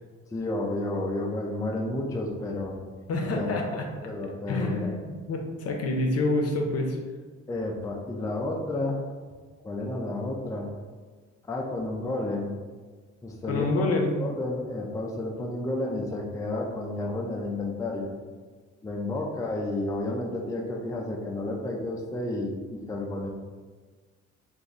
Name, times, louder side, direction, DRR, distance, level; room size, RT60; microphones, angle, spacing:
voice 1, 0.3-2.7 3.3-3.5 4.0-4.9 7.5-9.0 9.6-10.7 11.5-12.5 13.2-13.8 14.2-18.1 18.8-23.3, left 2 dB, 10° left, -1 dB, 0.4 m, -31 dB
voice 2, 3.1-3.8 4.5-7.0 13.5-14.2, left 2 dB, 55° left, 2 dB, 0.7 m, -27 dB
3.0 x 2.6 x 3.7 m, 1.4 s
cardioid pair, 90°, 30 cm